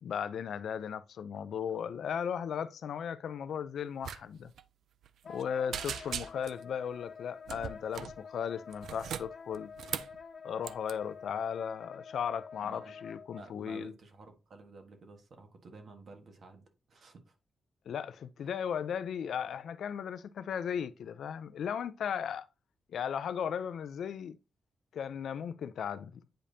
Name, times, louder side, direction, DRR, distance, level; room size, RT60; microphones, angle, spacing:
voice 1, 0.0-4.5 5.2-9.7 10.4-13.9 17.9-22.5 22.9-24.4 24.9-26.2, left 8 dB, 70° left, 0.5 m, -36 dB
sound 1, 4.0-4.2 4.5-4.6 5.0-5.4 5.7-6.6 7.5-8.2 8.7-10.2 10.6-10.9, right 8 dB, 85° right, 0.4 m, -39 dB
Wind instrument woodwind instrument, 5.2-13.4, left 6 dB, 40° left, 0.9 m, -48 dB
voice 2, 12.6-13.0 13.4-17.3, right 3 dB, 45° right, 1.5 m, -52 dB
8.8 x 5.1 x 2.8 m
wide cardioid pair, 175°, 0 cm